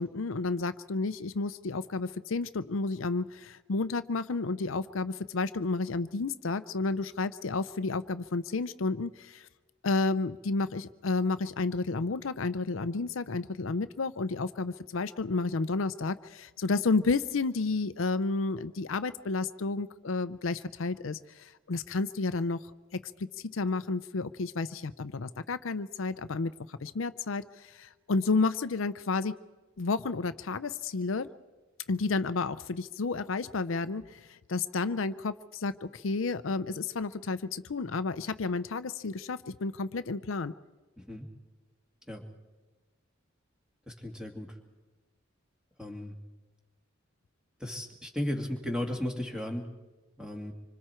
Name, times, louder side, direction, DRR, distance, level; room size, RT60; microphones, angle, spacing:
voice 1, 0.0-9.5 9.8-22.6 22.9-29.3 29.8-31.3 31.9-40.5, left 3 dB, 70° left, 12 dB, 0.6 m, -31 dB
voice 2, 41.0-41.3 42.1-42.2 43.9-44.5 45.8-46.1 47.6-49.7 50.2-50.5, left 1 dB, 5° right, 2 dB, 2.3 m, -35 dB
26.0 x 25.5 x 4.5 m, 1.2 s
head